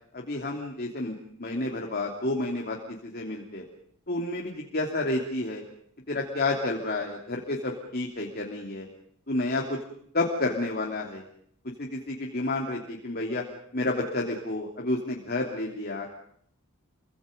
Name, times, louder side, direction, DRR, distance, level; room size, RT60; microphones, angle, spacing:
voice 1, 0.1-2.8 3.0-3.6 4.1-5.6 6.1-8.9 9.3-9.8 10.1-11.2 11.8-13.4 13.7-16.2, left 2 dB, 45° left, 1 dB, 3.1 m, -30 dB
29.5 x 24.0 x 5.3 m, 0.66 s
head